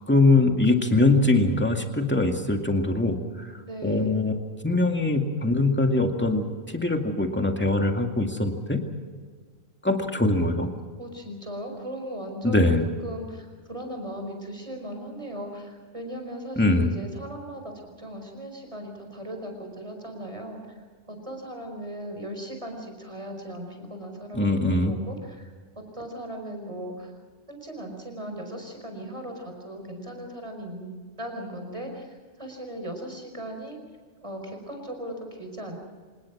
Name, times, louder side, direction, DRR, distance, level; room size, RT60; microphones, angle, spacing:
voice 1, 0.1-3.5 3.8-4.3 4.6-8.8 9.8-10.7 12.4-12.8 16.6-16.9 24.3-25.0, left 2 dB, 10° left, 3 dB, 2.2 m, -22 dB
voice 2, 3.6-4.1 11.0-12.7 13.0-20.7 21.1-27.1 27.5-30.9 31.2-33.8 34.2-35.8, equal, 30° right, 3 dB, 5.0 m, -37 dB
26.0 x 20.0 x 6.2 m, 1.5 s
omnidirectional pair, 1.2 m